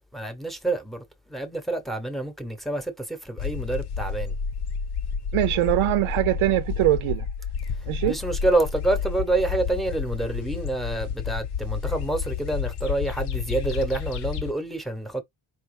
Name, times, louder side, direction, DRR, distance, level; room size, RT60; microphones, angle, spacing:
voice 1, 0.1-4.4 8.0-15.2, right 2 dB, ahead, 0.8 m, -27 dB
sound 1, 3.4-14.5, left 6 dB, 55° left, 0.8 m, -30 dB
voice 2, 5.3-7.3 7.9-8.1, right 15 dB, 90° right, 0.6 m, -22 dB
5.0 x 2.9 x 3.1 m
cardioid pair, 125°, 48 cm